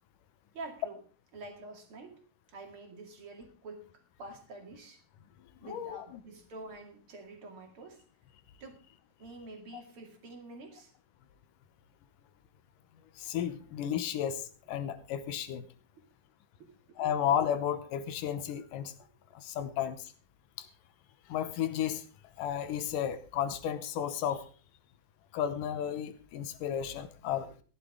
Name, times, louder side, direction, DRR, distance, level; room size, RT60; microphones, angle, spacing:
voice 1, 0.5-1.0 1.3-5.0 5.6-8.0 8.6-8.8 9.2-10.9 15.9-16.0 16.6-17.1, right 2 dB, 40° right, 4 dB, 2.8 m, -48 dB
voice 2, 5.6-6.1 13.2-15.6 17.0-18.9 19.3-20.1 20.6-20.7 21.3-22.1 22.4-24.5 25.3-27.5, left 9 dB, 70° left, 11 dB, 2.3 m, -33 dB
16.0 x 11.0 x 3.6 m, 0.38 s
omnidirectional pair, 4.3 m